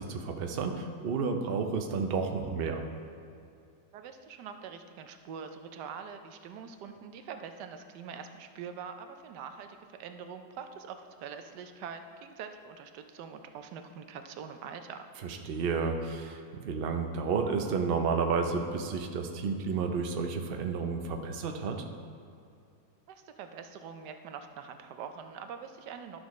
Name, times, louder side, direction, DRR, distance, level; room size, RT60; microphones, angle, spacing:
voice 1, 0.0-2.8 15.2-21.8, right 5 dB, 65° right, 4 dB, 0.5 m, -31 dB
voice 2, 3.9-15.0 23.1-26.2, right 6 dB, 85° right, 7 dB, 1.2 m, -44 dB
11.5 x 6.2 x 3.1 m, 2.5 s
omnidirectional pair, 1.8 m